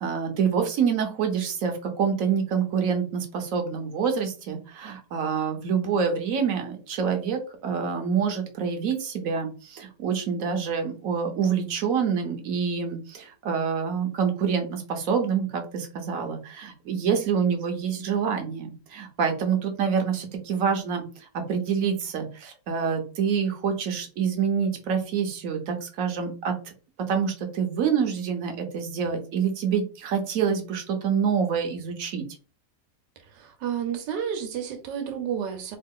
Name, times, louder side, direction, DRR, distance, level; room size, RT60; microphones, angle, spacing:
voice 1, 0.0-26.5 27.1-32.3, right 6 dB, 60° right, 5 dB, 1.0 m, -26 dB
voice 2, 33.3-35.8, right 8 dB, 80° right, 6 dB, 1.4 m, -31 dB
3.1 x 2.4 x 3.6 m, 0.35 s
omnidirectional pair, 1.9 m